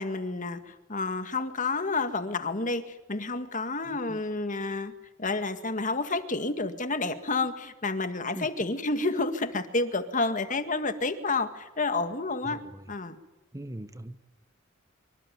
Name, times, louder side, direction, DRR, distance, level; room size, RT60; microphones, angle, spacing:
voice 1, 0.0-4.9 5.2-12.6 12.9-13.2, left 3 dB, 40° left, 10 dB, 1.9 m, -30 dB
voice 2, 3.8-4.2 8.4-8.5 12.4-12.8 13.5-14.2, right 1 dB, 15° right, 11 dB, 1.1 m, -41 dB
26.0 x 24.5 x 9.4 m, 0.93 s
head